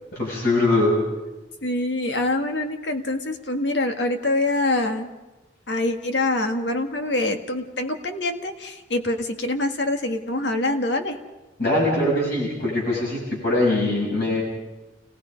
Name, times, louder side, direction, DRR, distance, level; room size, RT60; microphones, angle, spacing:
voice 1, 0.2-0.9 11.6-14.4, left 2 dB, 60° left, -4 dB, 7.3 m, -22 dB
voice 2, 1.6-5.1 5.7-11.2, left 2 dB, 80° left, 6 dB, 1.7 m, -25 dB
29.5 x 18.5 x 5.2 m, 1.1 s
head